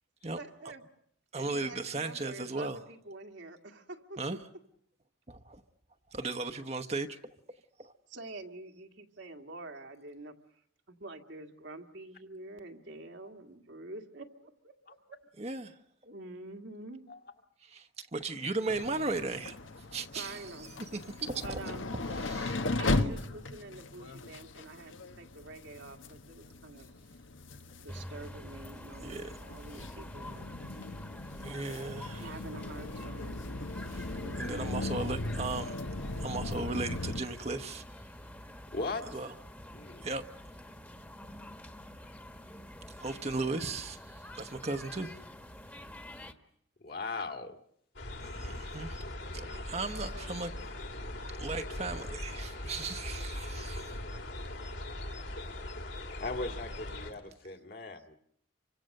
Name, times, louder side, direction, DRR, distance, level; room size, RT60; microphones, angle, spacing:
voice 1, 0.4-0.8 1.3-4.4 8.1-10.3 10.9-14.7 15.1-15.2 16.0-17.0 20.1-20.7 21.4-21.9 22.8-26.9 27.8-30.5 32.2-33.5 34.1-35.0, right 2 dB, 70° right, 4 dB, 2.0 m, -47 dB
voice 2, 1.3-2.8 4.2-4.4 5.3-5.6 6.1-7.2 7.8-7.9 15.4-15.8 17.6-19.6 19.9-20.4 20.9-21.8 22.1-23.1 29.0-29.3 29.7-29.8 31.4-32.2 33.9-34.1 34.4-35.8 36.2-37.8 39.1-39.3 40.0-40.2 43.0-45.1 48.2-49.0 49.3-50.5 51.4-53.9, right 3 dB, 35° right, 7 dB, 1.0 m, -36 dB
sound 1, 18.7-37.2, left 2 dB, 90° left, 1.4 m, -38 dB
sound 2, 27.9-46.3, equal, 10° left, 1.3 m, -46 dB
voice 3, 34.8-35.1 38.7-39.1 39.7-40.1 46.8-47.6 56.2-58.2, left 3 dB, 50° left, 6 dB, 2.0 m, -38 dB
sound 3, 48.0-57.1, left 1 dB, 70° left, 2.8 m, -40 dB
29.0 x 25.0 x 6.6 m, 0.70 s
head